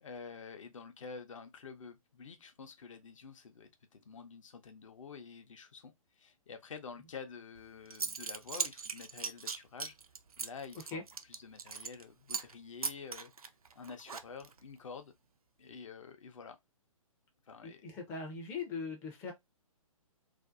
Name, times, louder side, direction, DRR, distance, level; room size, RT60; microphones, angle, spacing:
voice 1, 0.0-10.0 10.4-13.3 13.7-15.1 15.6-16.6 17.5-17.8, left 5 dB, 60° left, 0.6 m, -49 dB
Zipper (clothing) / Coin (dropping), 7.6-7.7 7.9-12.0 12.3-12.5 12.8-14.6, right 5 dB, 85° right, 0.4 m, -39 dB
voice 2, 17.6-19.3, left 4 dB, 10° left, 0.4 m, -40 dB
2.5 x 2.1 x 2.4 m
figure-of-eight pair, 125°, 18 cm